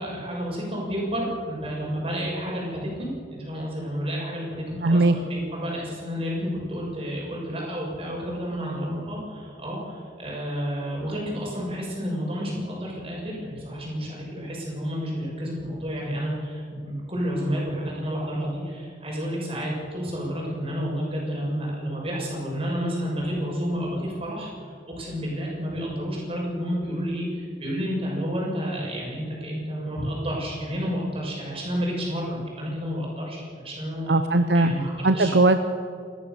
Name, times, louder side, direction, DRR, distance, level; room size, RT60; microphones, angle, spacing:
voice 1, 0.0-34.1 34.5-35.3, equal, 35° right, -3 dB, 6.9 m, -30 dB
voice 2, 4.8-5.1 34.1-34.7 35.0-35.6, right 2 dB, 75° right, 9 dB, 0.9 m, -19 dB
29.5 x 14.0 x 7.0 m, 2.2 s
head